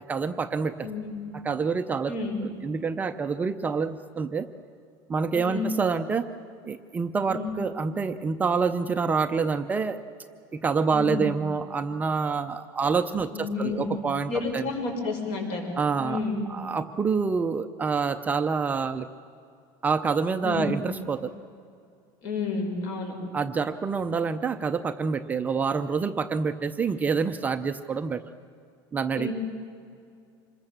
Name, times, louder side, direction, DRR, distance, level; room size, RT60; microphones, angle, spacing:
voice 1, 0.0-0.9 1.3-2.1 2.6-4.5 5.1-6.3 6.6-10.0 10.5-14.7 15.8-16.2 16.5-19.1 19.8-21.3 23.3-28.2 28.9-29.3, right 5 dB, 15° right, 8 dB, 0.6 m, -27 dB
voice 2, 0.8-1.2 2.1-2.4 5.3-5.7 7.3-7.5 10.9-11.3 13.3-13.9 14.3-15.7 16.0-16.5 20.4-20.8 22.2-23.1 29.1-29.3, left 4 dB, 55° left, 2 dB, 6.1 m, -30 dB
26.5 x 21.5 x 7.3 m, 2.4 s
cardioid pair, 165°, 11 cm